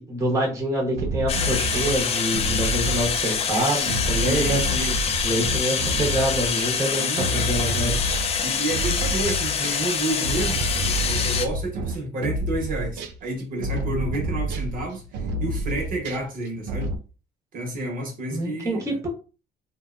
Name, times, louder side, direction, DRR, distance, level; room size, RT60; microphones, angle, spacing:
voice 1, 0.0-4.6 5.2-8.0 18.3-19.1, right 1 dB, 15° right, 0.9 m, -26 dB
sound 1, 1.0-9.8 10.2-17.0, right 1 dB, 85° right, 0.4 m, -29 dB
sound 2, 1.3-11.5, left 6 dB, 35° left, 0.4 m, -25 dB
voice 2, 4.2-5.0 6.7-7.5 8.4-16.9 17.5-19.0, right 1 dB, 55° right, 0.9 m, -30 dB
2.6 x 2.1 x 2.4 m
cardioid pair, 110°, 17 cm